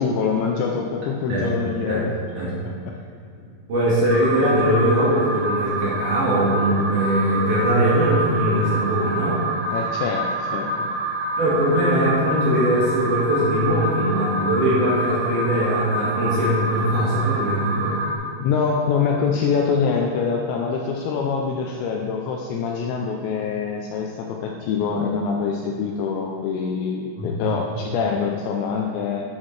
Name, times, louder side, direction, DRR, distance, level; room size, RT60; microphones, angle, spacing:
voice 1, 0.0-2.1 9.7-10.9 18.4-29.2, left 5 dB, 80° left, 1 dB, 2.6 m, -24 dB
voice 2, 3.7-9.4 11.4-18.0 27.2-27.3, right 1 dB, 55° right, -8 dB, 2.5 m, -21 dB
Alarm, 4.1-18.2, right 1 dB, 85° right, 1.6 m, -27 dB
11.0 x 8.3 x 3.2 m, 2.3 s
omnidirectional pair, 5.6 m